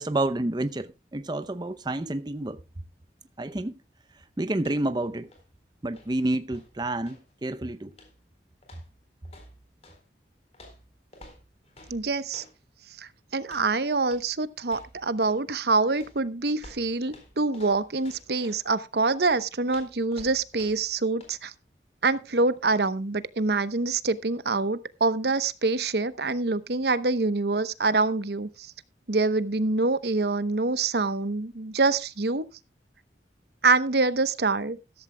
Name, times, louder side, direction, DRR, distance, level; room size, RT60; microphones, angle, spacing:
voice 1, 0.0-2.6 3.4-3.7 4.4-5.3 5.8-7.9, right 1 dB, 25° right, 0.6 m, -29 dB
sound 1, 4.6-5.0 5.2-7.3 7.9-8.3 8.6-10.0 10.5-12.6 13.4-13.7 14.0-14.3 14.6-15.5 16.0-18.7 19.2-20.9 21.2-21.4, left 1 dB, 35° left, 4.0 m, -52 dB
voice 2, 11.9-12.4 13.0-21.5 22.0-28.7 29.1-32.4 33.6-34.8, right 3 dB, 65° right, 0.9 m, -25 dB
15.0 x 13.5 x 2.2 m
head